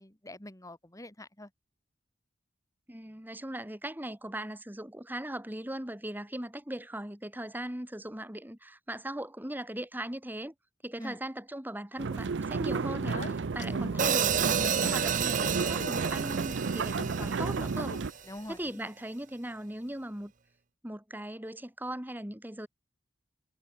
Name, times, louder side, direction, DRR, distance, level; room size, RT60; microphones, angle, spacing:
voice 1, 0.0-1.5 11.0-11.2 13.7-14.0 18.3-18.9, left 1 dB, 20° left, 2.7 m, -45 dB
voice 2, 2.9-10.5 10.8-18.0 18.5-20.3 20.8-22.7, right 1 dB, 10° right, 2.3 m, -39 dB
sound 1, 12.0-18.1, right 4 dB, 80° right, 0.6 m, -32 dB
Speech, 12.7-18.7, left 2 dB, 45° left, 3.4 m, -47 dB
Hi-hat, 14.0-18.2, right 8 dB, 45° right, 0.8 m, -31 dB
head